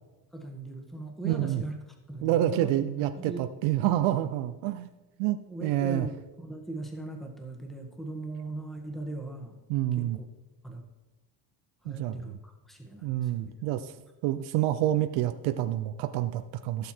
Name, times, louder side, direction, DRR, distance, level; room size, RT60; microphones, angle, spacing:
voice 1, 0.3-1.7 2.1-2.7 3.2-3.4 5.5-9.6 10.0-10.2 10.6-10.9 11.8-13.5, right 2 dB, ahead, 3 dB, 1.7 m, -39 dB
voice 2, 1.2-1.6 2.2-4.9 5.2-6.1 9.7-10.2 11.8-12.2 13.0-13.9 14.2-16.9, right 13 dB, 90° right, 9 dB, 0.8 m, -28 dB
16.0 x 7.0 x 4.5 m, 1.1 s
cardioid pair, 125°, 45 cm